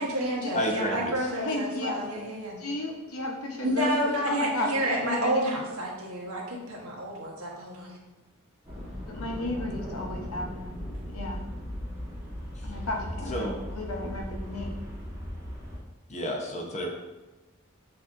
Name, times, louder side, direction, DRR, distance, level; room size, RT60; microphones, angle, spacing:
voice 1, 0.0-2.6 3.6-8.0, right 1 dB, 90° right, -2 dB, 1.1 m, -30 dB
voice 2, 0.5-1.1 13.3-13.5 16.1-16.9, equal, 35° left, -1 dB, 0.8 m, -30 dB
voice 3, 1.3-2.0 2.6-5.4 9.1-11.5 12.6-14.8, left 2 dB, 90° left, 1 dB, 0.8 m, -34 dB
sound 1, 8.6-15.8, equal, 15° right, 1.1 m, -37 dB
6.7 x 2.8 x 2.5 m, 1.1 s
head